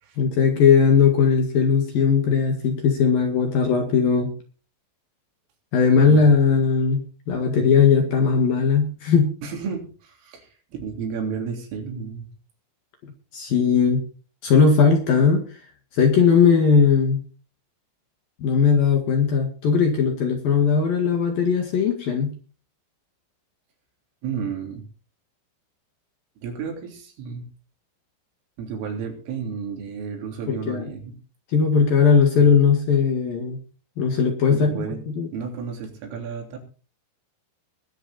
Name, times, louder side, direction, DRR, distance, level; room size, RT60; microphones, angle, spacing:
voice 1, 0.2-4.3 5.7-9.4 13.3-14.0 14.4-15.4 15.9-17.2 18.4-22.3 30.5-30.9 31.5-33.6 34.0-35.3, left 6 dB, 55° left, 4 dB, 2.9 m, -18 dB
voice 2, 9.4-12.3 24.2-24.9 26.4-27.5 28.6-31.1 34.5-35.0 35.3-36.6, right 6 dB, 75° right, 2 dB, 5.8 m, -32 dB
21.0 x 9.0 x 4.2 m, 0.38 s
omnidirectional pair, 6.0 m